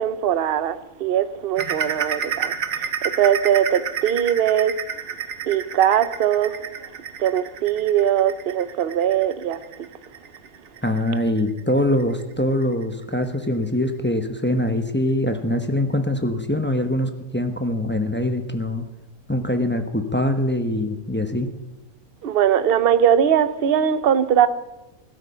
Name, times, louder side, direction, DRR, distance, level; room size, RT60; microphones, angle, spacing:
voice 1, 0.0-2.5 3.2-4.7 5.5-6.6 7.2-9.6 22.2-24.5, right 9 dB, 50° right, 0.8 m, -20 dB
sound 1, 1.6-12.8 13.2-13.4 13.8-13.9 14.5-14.6, right 7 dB, 70° right, 1.4 m, -30 dB
voice 2, 10.8-18.8 19.3-21.5, left 1 dB, 10° left, 0.8 m, -23 dB
15.5 x 12.5 x 5.6 m
omnidirectional pair, 1.5 m